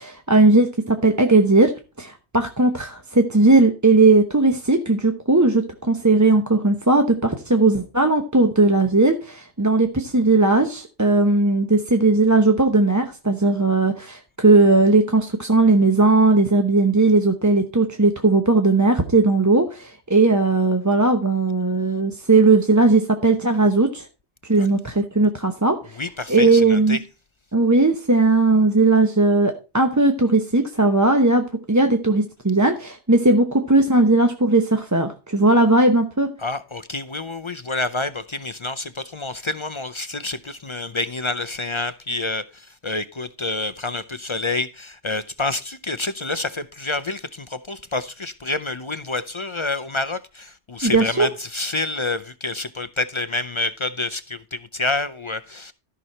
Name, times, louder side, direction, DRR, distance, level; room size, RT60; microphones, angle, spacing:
voice 1, 0.0-1.7 2.0-24.1 24.5-26.0 26.3-27.0 27.5-36.3 50.8-51.3, right 2 dB, 15° right, 0.8 m, -18 dB
voice 2, 26.0-27.0 36.4-55.7, left 2 dB, 40° left, 0.5 m, -28 dB
14.0 x 6.1 x 4.3 m
omnidirectional pair, 1.2 m